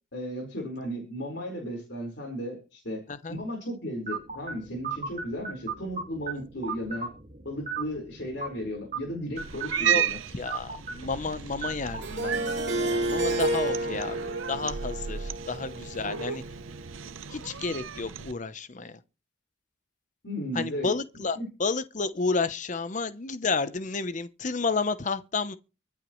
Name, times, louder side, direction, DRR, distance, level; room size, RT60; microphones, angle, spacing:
voice 1, 0.1-7.1 7.4-10.2 16.0-16.2 20.2-20.9 21.4-21.5, equal, 55° left, 4.6 m, -35 dB
sound 1, 4.1-13.6, right 5 dB, 35° right, 1.9 m, -39 dB
Cat, 9.4-18.3, right 8 dB, 80° right, 0.7 m, -34 dB
voice 2, 10.3-16.4 17.3-19.0 20.5-25.6, left 4 dB, 40° left, 0.7 m, -31 dB
Harp, 12.0-17.0, right 1 dB, 55° right, 3.4 m, -31 dB
24.0 x 8.1 x 3.1 m
head